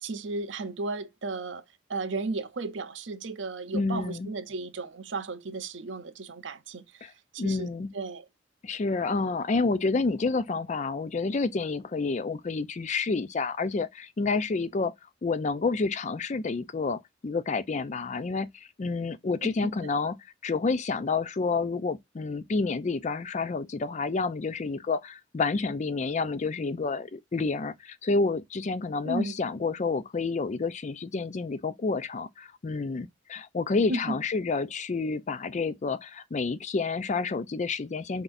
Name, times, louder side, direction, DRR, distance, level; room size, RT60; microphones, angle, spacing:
voice 1, 0.0-1.6 1.9-8.3 19.4-19.7 29.0-29.4 33.9-34.2, right 3 dB, 75° right, 0.7 m, -34 dB
voice 2, 3.7-4.3 7.0-7.1 7.4-7.9 8.6-14.9 15.2-20.2 20.4-38.2, left 4 dB, 40° left, 0.4 m, -29 dB
4.5 x 4.0 x 2.6 m
head